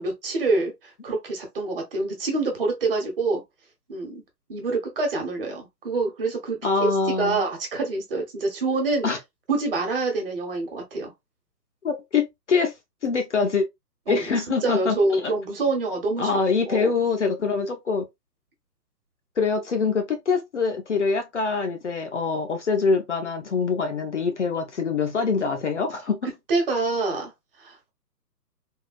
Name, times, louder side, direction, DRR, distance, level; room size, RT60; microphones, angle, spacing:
voice 1, 0.0-3.4 3.9-4.2 4.5-6.9 7.2-9.1 9.5-11.1 14.1-14.3 14.6-16.9 26.5-27.3 27.6-27.9, right 3 dB, 35° right, 1.1 m, -26 dB
voice 2, 6.6-7.4 9.0-9.2 11.8-12.7 13.0-13.6 14.1-15.3 16.2-18.0 19.4-26.2, left 5 dB, 45° left, 0.6 m, -24 dB
3.6 x 2.3 x 2.4 m
figure-of-eight pair, 145°, 50 cm